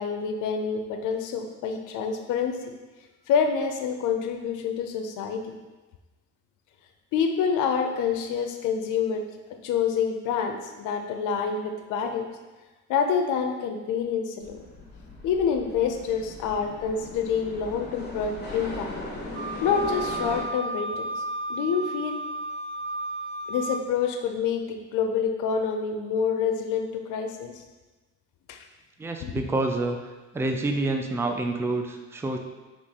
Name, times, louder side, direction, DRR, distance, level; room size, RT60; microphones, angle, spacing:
voice 1, 0.0-2.7 3.3-5.5 7.1-9.3 9.6-12.3 12.9-14.6 15.2-18.9 19.6-21.2 21.5-22.2 23.5-27.6 28.5-28.6 29.2-29.3, left 6 dB, 90° left, 5 dB, 0.5 m, -27 dB
sound 1, 14.4-20.4, left 2 dB, 35° left, 1.1 m, -38 dB
Wind instrument woodwind instrument, 19.3-23.9, right 2 dB, 60° right, 0.6 m, -33 dB
voice 2, 29.0-32.4, right 2 dB, 10° right, 3 dB, 0.4 m, -28 dB
4.0 x 3.1 x 3.5 m, 1.2 s
cardioid pair, 90°, 30 cm